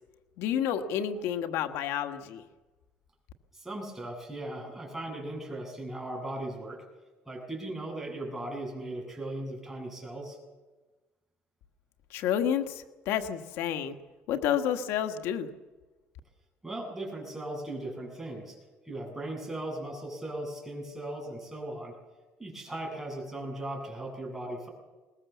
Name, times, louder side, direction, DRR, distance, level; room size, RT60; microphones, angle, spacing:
voice 1, 0.4-2.4 12.1-14.0 14.3-15.5, left 9 dB, 90° left, 7 dB, 1.5 m, -30 dB
voice 2, 3.5-6.8 7.3-10.4 16.6-18.5 18.8-22.0 22.4-24.7, right 1 dB, 10° right, -1 dB, 7.9 m, -38 dB
21.5 x 20.0 x 7.3 m, 1.2 s
cardioid pair, 115°, 4 cm